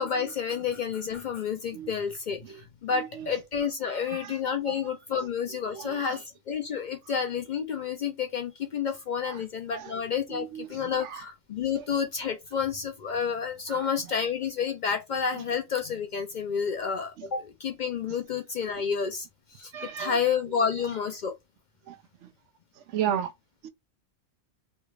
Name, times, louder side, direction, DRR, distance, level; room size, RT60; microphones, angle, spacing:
voice 1, 0.0-6.2 6.5-19.3 19.5-21.4, left 6 dB, 60° left, 0.5 m, -30 dB
voice 2, 2.9-3.3 3.9-4.3 4.7-4.8 5.7-6.2 9.2-9.4 9.7-9.9 10.3-11.2 11.7-11.8 13.7-13.9 19.7-20.1 21.9-22.3 22.9-23.3 23.6-23.7, right 9 dB, 85° right, 0.9 m, -35 dB
3.2 x 2.4 x 3.1 m
omnidirectional pair, 1.2 m